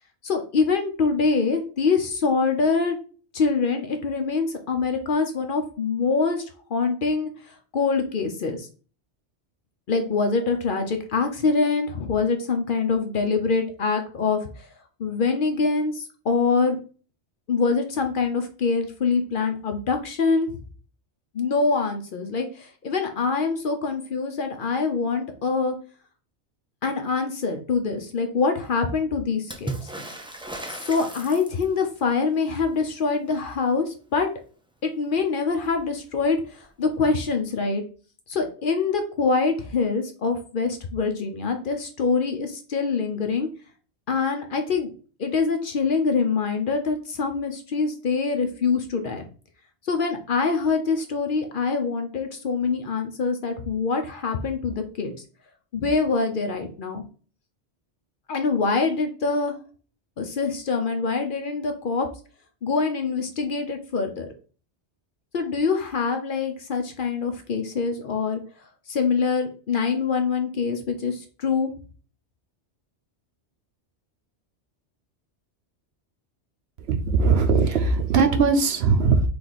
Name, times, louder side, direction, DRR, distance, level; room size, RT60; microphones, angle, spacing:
voice 1, 0.2-3.0 3.3-6.4 6.7-7.3 7.7-8.7 9.9-14.7 15.0-16.8 17.5-20.5 21.3-25.7 26.8-29.9 30.7-34.3 34.8-37.8 38.3-43.5 44.1-44.9 45.2-49.2 49.9-55.1 55.7-57.0 58.3-59.5 60.2-62.1 62.6-64.3 65.3-68.4 68.9-71.7, left 4 dB, 55° left, 6 dB, 0.7 m, -24 dB
Water / Splash splatter, 29.5-31.9 35.2-35.3 35.5-36.3 37.4-37.5, right 2 dB, 10° right, 0.3 m, -36 dB
voice 2, 76.9-79.3, right 4 dB, 65° right, 6 dB, 0.8 m, -20 dB
3.3 x 3.2 x 3.9 m, 0.39 s
omnidirectional pair, 1.2 m